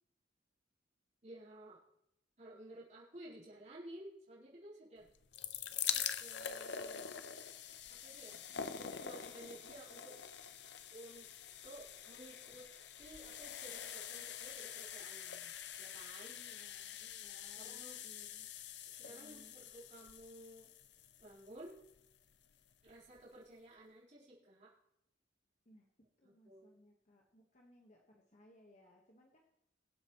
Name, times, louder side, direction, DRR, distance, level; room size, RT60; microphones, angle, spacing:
voice 1, 1.2-1.8 2.4-5.1 5.8-7.1 7.9-8.4 8.7-10.2 10.4-10.6 10.9-11.3 11.6-12.7 13.0-16.4 17.5-18.0 18.9-20.7 21.2-21.8 22.8-24.7 26.2-26.7, right 1 dB, 40° right, -8 dB, 4.1 m, -54 dB
sound 1, 5.1-22.1 22.9-23.0 23.2-23.3, left 9 dB, 65° left, 0.7 m, -45 dB
voice 2, 16.3-18.5 19.1-19.5 25.6-29.4, equal, 40° left, 0 dB, 1.3 m, -64 dB
22.5 x 8.0 x 3.1 m, 0.79 s
head